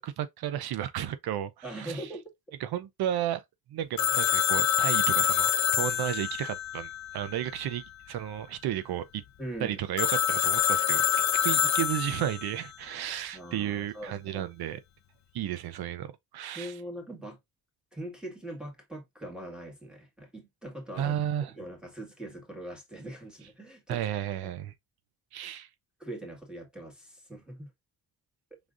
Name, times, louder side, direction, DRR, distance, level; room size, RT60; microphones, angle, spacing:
voice 1, 0.0-2.1 2.6-3.4 3.7-9.2 9.6-14.8 15.3-16.7 21.0-21.5 23.9-24.7 25.3-25.7, right 11 dB, 90° right, 0.7 m, -33 dB
voice 2, 1.6-2.2 9.4-9.8 13.3-14.5 16.5-17.4 17.9-21.2 21.6-24.0 24.4-24.5 26.0-27.7 28.5-28.6, right 1 dB, ahead, 2.0 m, -41 dB
Telephone, 4.0-7.6 10.0-12.5, left 9 dB, 50° left, 0.7 m, -26 dB
5.1 x 3.7 x 2.5 m
cardioid pair, 125°, 37 cm